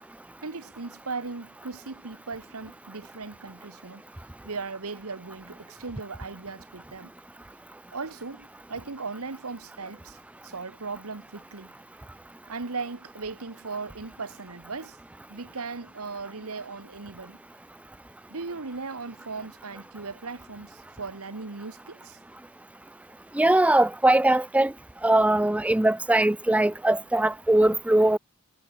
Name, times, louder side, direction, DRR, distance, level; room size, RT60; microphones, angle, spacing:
voice 1, 0.4-4.0 4.4-7.1 7.9-11.7 12.5-15.0 15.3-17.4 18.3-22.2, right 4 dB, 80° right, 1.3 m, -38 dB
voice 2, 23.3-24.7 25.0-28.2, right 1 dB, 5° right, 0.3 m, -21 dB
head